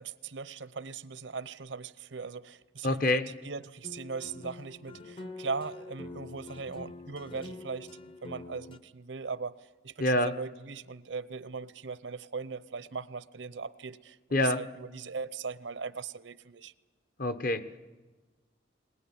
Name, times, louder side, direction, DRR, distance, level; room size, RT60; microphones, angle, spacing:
voice 1, 0.0-7.9 8.2-16.7, right 5 dB, 75° right, 16 dB, 0.8 m, -39 dB
voice 2, 2.8-3.3 10.0-10.3 14.3-14.6 17.2-17.8, left 1 dB, 50° left, 11 dB, 1.1 m, -26 dB
sound 1, 3.8-8.8, left 2 dB, 30° left, 0.8 m, -45 dB
21.0 x 20.0 x 10.0 m, 1.2 s
head